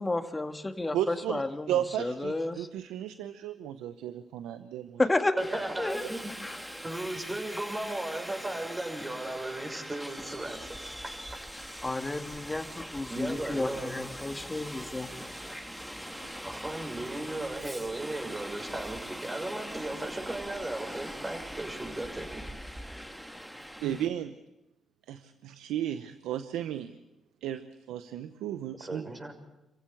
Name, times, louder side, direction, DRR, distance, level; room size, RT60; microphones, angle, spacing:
voice 1, 0.0-1.7 2.0-2.7 5.0-5.4 5.8-6.1 6.4-6.6 11.8-15.1, left 2 dB, 20° left, 6 dB, 2.2 m, -31 dB
voice 2, 0.9-1.4 1.7-5.0 16.2-16.3 23.8-24.3 25.1-26.9 27.4-29.0, right 11 dB, 85° right, 11 dB, 0.8 m, -34 dB
Subway metro underground, 5.4-24.1, equal, 5° right, 2.4 m, -42 dB
voice 3, 5.4-6.2 6.8-10.9 13.1-13.9 16.4-22.3 28.8-29.3, right 2 dB, 25° right, 4 dB, 6.4 m, -36 dB
26.5 x 15.5 x 8.6 m, 0.97 s
supercardioid pair, 55°, 0 cm